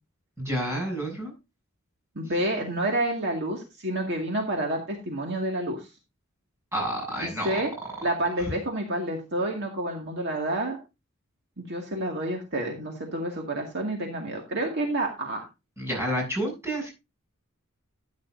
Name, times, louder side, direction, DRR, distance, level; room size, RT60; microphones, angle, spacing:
voice 1, 0.4-1.3 6.7-7.6 8.4-8.5 15.8-16.9, right 1 dB, 10° right, -1 dB, 7.3 m, -29 dB
voice 2, 2.2-5.9 7.4-7.7 8.0-10.8 11.6-15.5, right 1 dB, 55° right, 1 dB, 2.1 m, -29 dB
13.5 x 9.5 x 2.6 m, 0.26 s
head